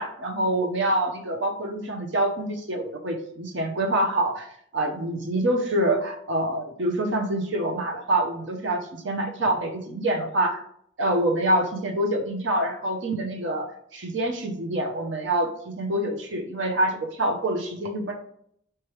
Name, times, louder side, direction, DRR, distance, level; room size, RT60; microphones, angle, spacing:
voice 1, 0.0-4.5 4.7-10.6 11.0-13.7 13.9-18.1, right 1 dB, 60° right, 3 dB, 0.7 m, -26 dB
4.5 x 3.2 x 3.0 m, 0.67 s
head